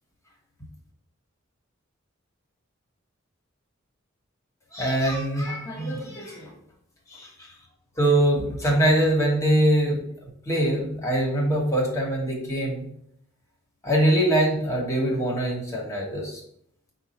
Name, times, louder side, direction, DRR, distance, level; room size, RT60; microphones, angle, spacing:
voice 1, 4.7-6.5 7.1-7.5 8.0-10.0 10.5-12.8 13.8-16.4, right 1 dB, 15° left, -2 dB, 1.2 m, -23 dB
5.3 x 2.3 x 4.2 m, 0.71 s
head